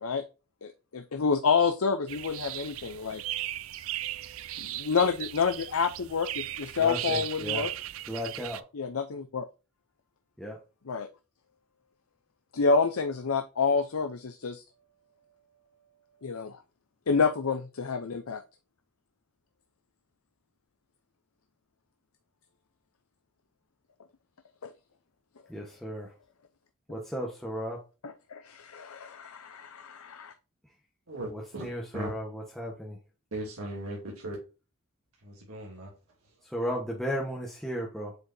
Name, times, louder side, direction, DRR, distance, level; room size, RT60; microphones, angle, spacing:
voice 1, 0.6-3.2 4.6-7.7 8.7-9.5 10.9-11.1 12.5-14.6 16.2-16.6 17.1-18.4 24.6-24.7 28.0-30.3, left 5 dB, 80° left, 0.7 m, -28 dB
sound 1, 2.1-8.6, right 14 dB, 65° right, 0.5 m, -37 dB
voice 2, 6.8-7.7 8.1-8.6 10.4-10.6 25.5-26.1 26.9-27.8 31.3-33.0 36.5-38.2, equal, ahead, 1.3 m, -35 dB
voice 3, 31.1-31.7 31.9-32.2 33.3-34.4 35.2-36.4, right 1 dB, 85° right, 2.8 m, -38 dB
7.9 x 4.6 x 2.7 m
head